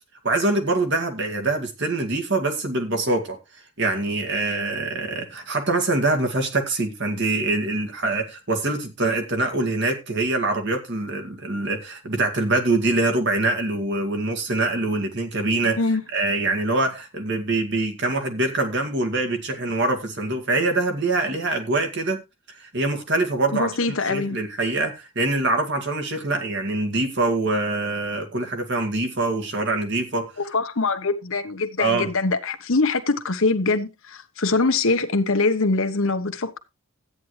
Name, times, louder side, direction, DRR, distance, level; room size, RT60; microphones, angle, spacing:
voice 1, 0.2-3.4 3.8-15.8 16.1-22.2 22.6-30.3 31.8-32.1, right 2 dB, 50° right, 2.0 m, -24 dB
voice 2, 23.5-24.4 30.4-36.6, left 3 dB, 65° left, 1.1 m, -23 dB
13.5 x 9.4 x 3.2 m
head